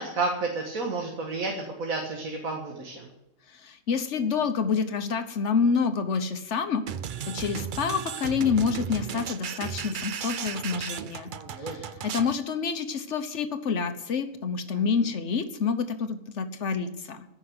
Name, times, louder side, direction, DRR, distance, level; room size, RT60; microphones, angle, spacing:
voice 1, 0.0-3.1 11.3-11.8 14.7-14.8, right 3 dB, 80° right, 1 dB, 2.1 m, -31 dB
voice 2, 3.5-6.9 7.3-11.3 11.6-17.3, left 5 dB, 60° left, 9 dB, 1.3 m, -28 dB
sound 1, 6.9-12.4, right 8 dB, 60° right, 0.5 m, -35 dB
15.0 x 6.2 x 9.5 m, 0.90 s
omnidirectional pair, 1.4 m